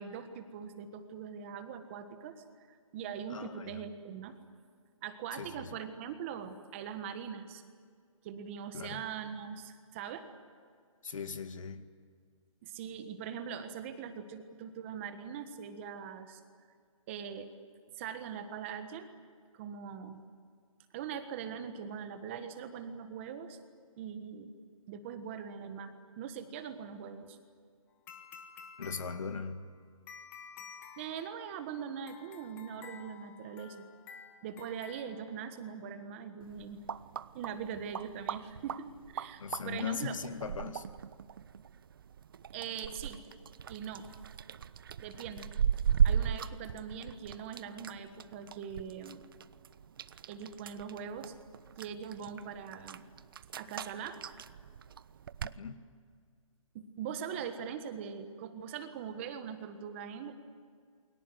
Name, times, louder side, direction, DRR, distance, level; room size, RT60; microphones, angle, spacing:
voice 1, 0.0-4.4 5.0-7.6 8.2-10.3 12.6-16.4 17.1-17.5 17.9-19.1 19.5-20.2 20.9-23.6 24.0-24.5 24.9-27.4 31.0-33.8 34.4-36.8 37.3-40.1 42.5-43.2 43.7-44.1 45.0-45.5 46.0-49.2 50.3-51.3 51.8-53.0 53.5-54.2 56.7-60.3, right 7 dB, 20° right, 8 dB, 1.5 m, -42 dB
voice 2, 3.3-3.8 5.3-5.7 8.7-9.0 11.0-11.8 28.8-29.6 39.4-40.9 55.6-55.8, left 5 dB, 70° left, 9 dB, 2.2 m, -39 dB
sound 1, 28.1-35.8, left 6 dB, 10° left, 1.2 m, -52 dB
sound 2, 36.4-55.6, right 8 dB, 40° right, 0.7 m, -37 dB
29.0 x 23.0 x 8.0 m, 2.1 s
hypercardioid pair, 165°, 17 cm